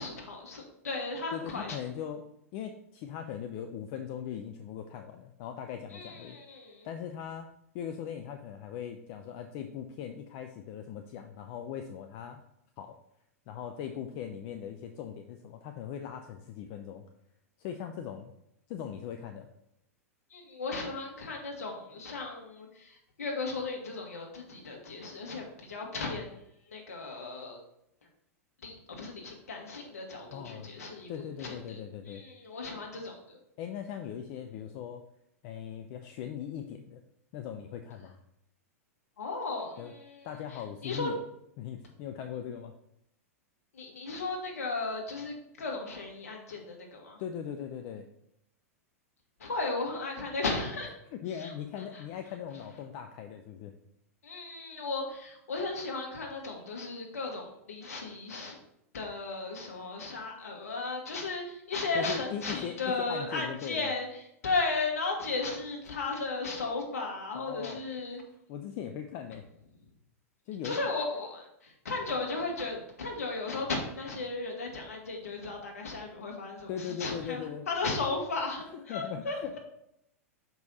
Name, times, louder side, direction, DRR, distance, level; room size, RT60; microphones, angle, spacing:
voice 1, 0.0-1.8 5.9-6.9 20.3-26.3 26.7-27.6 28.6-33.4 39.2-40.3 40.8-41.1 43.8-47.2 49.4-50.9 51.4-51.5 54.2-58.6 58.9-64.1 64.4-68.2 70.6-79.6, left 3 dB, 70° left, 0 dB, 1.9 m, -35 dB
voice 2, 1.3-2.3 2.5-6.4 6.8-7.5 7.7-12.4 12.8-13.0 13.5-17.0 17.6-18.3 18.7-19.5 30.3-30.7 31.1-32.2 33.6-35.0 35.4-37.0 37.3-38.1 39.8-39.9 40.2-41.2 41.6-42.8 47.2-48.1 51.1-53.7 61.9-63.9 67.3-67.8 68.5-69.5 70.5-70.8 76.7-77.7 78.7-79.5, left 8 dB, 45° left, 6 dB, 0.5 m, -39 dB
6.1 x 5.2 x 4.1 m, 0.77 s
figure-of-eight pair, 100°, 8 cm